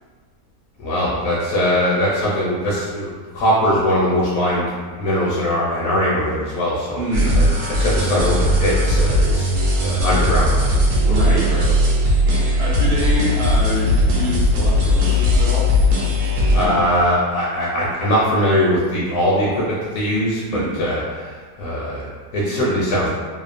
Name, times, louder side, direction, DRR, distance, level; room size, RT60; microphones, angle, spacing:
voice 1, 0.8-7.0 7.4-7.5 7.8-11.7 16.5-23.1, equal, 70° left, -7 dB, 0.9 m, -21 dB
voice 2, 6.9-7.4 11.1-11.6 12.4-15.7 16.6-16.8 20.4-20.7, right 1 dB, 70° right, -5 dB, 0.6 m, -26 dB
sound 1, 7.1-16.6, left 1 dB, 90° right, 1.1 m, -18 dB
2.8 x 2.0 x 2.4 m, 1.5 s
omnidirectional pair, 1.6 m